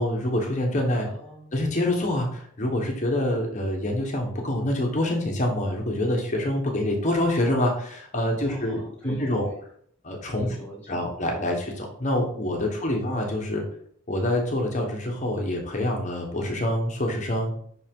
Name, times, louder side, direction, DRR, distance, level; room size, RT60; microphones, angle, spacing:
voice 1, 0.0-1.1 1.5-9.5 10.0-10.5 10.9-13.6 14.1-17.5, left 1 dB, 35° left, 1 dB, 1.2 m, -26 dB
voice 2, 1.1-1.5 8.3-9.5 10.4-11.1 12.8-13.1, right 1 dB, 5° left, -3 dB, 2.0 m, -44 dB
5.9 x 5.4 x 3.7 m, 0.63 s
head